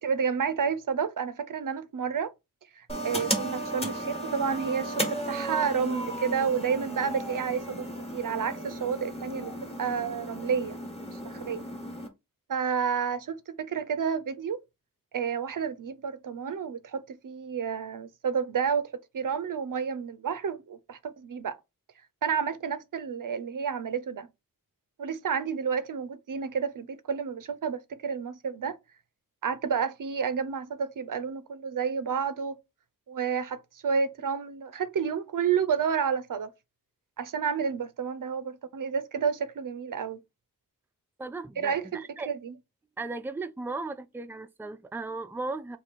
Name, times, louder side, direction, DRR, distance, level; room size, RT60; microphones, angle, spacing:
voice 1, 0.0-2.3 2.8-9.5 9.8-10.8 11.2-11.6 12.5-14.6 15.1-21.6 22.2-24.3 25.0-28.8 29.4-32.6 33.1-36.5 37.2-40.2 41.6-42.5, right 6 dB, 65° right, 0.5 m, -30 dB
sound 1, 2.9-12.1, right 1 dB, 15° left, 1.2 m, -35 dB
voice 2, 41.2-42.3 43.0-45.8, right 3 dB, 5° right, 0.3 m, -36 dB
2.9 x 2.6 x 4.0 m
wide cardioid pair, 55°, 35 cm